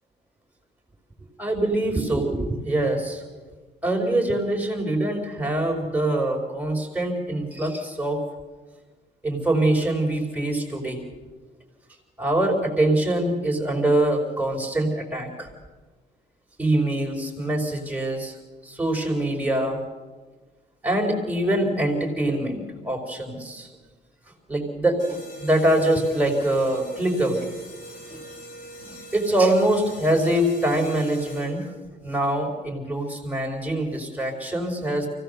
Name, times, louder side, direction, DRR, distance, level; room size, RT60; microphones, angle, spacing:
voice 1, 1.4-3.2 3.8-8.2 9.2-11.0 12.2-15.5 16.6-18.4 18.6-19.8 20.8-23.7 24.5-27.5 28.1-28.2 28.8-31.6 32.0-35.1, right 1 dB, 5° right, 1 dB, 4.5 m, -24 dB
sound 1, 25.0-31.8, right 1 dB, 70° left, 7.3 m, -41 dB
24.0 x 16.5 x 6.8 m, 1.4 s
cardioid pair, 90°, 20 cm